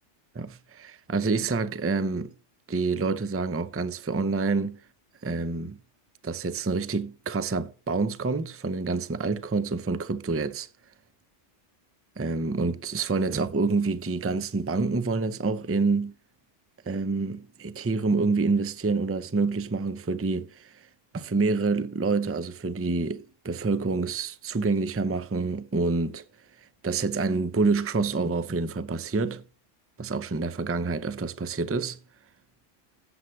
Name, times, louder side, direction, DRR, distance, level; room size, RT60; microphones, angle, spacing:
voice 1, 0.3-2.3 2.7-4.8 5.2-5.8 6.2-10.7 12.2-16.1 16.9-20.9 21.1-26.2 26.8-29.4 30.0-32.0, right 4 dB, 20° right, 0.4 m, -27 dB
14.0 x 8.0 x 3.2 m
omnidirectional pair, 1.3 m